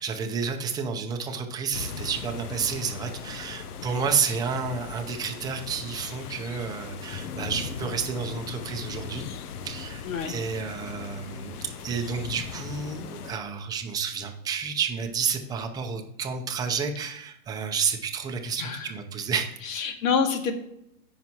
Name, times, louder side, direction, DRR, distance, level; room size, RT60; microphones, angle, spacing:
voice 1, 0.0-9.2 9.6-19.6, right 6 dB, 10° right, 4 dB, 0.7 m, -30 dB
sound 1, 1.7-13.4, left 6 dB, 80° left, 0.9 m, -38 dB
voice 2, 10.0-10.4 18.6-18.9 19.6-20.5, left 6 dB, 60° left, 5 dB, 2.1 m, -27 dB
17.5 x 5.9 x 3.0 m, 0.75 s
hypercardioid pair, 145°, 44 cm